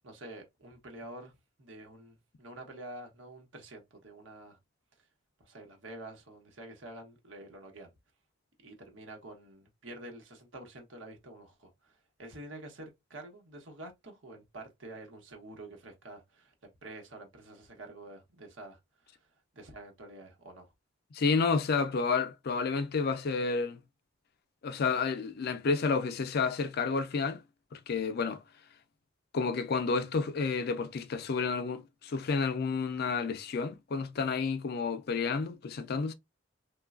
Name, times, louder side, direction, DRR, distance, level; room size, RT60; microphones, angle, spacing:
voice 1, 0.0-4.6 5.4-7.9 8.6-18.8 19.1-19.3 19.5-20.7, right 2 dB, 80° right, 0.9 m, -48 dB
voice 2, 21.1-23.8 24.6-27.4 27.7-28.4 29.3-36.1, left 4 dB, 55° left, 0.4 m, -30 dB
3.1 x 2.2 x 2.3 m
head